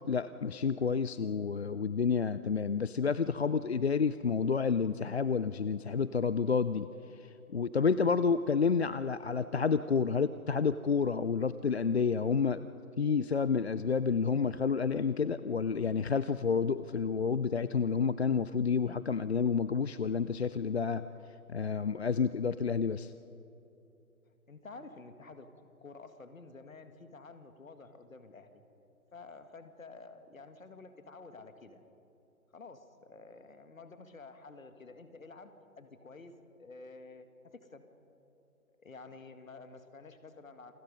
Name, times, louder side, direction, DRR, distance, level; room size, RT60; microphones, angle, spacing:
voice 1, 0.1-6.9 7.2-12.7 13.0-21.1 21.5-23.1, left 5 dB, 50° left, 14 dB, 0.4 m, -29 dB
voice 2, 24.5-28.6 29.1-31.8 32.5-37.8 38.8-40.7, left 3 dB, 65° left, 8 dB, 2.0 m, -51 dB
28.0 x 20.0 x 5.3 m, 3.0 s
figure-of-eight pair, 140°, 44 cm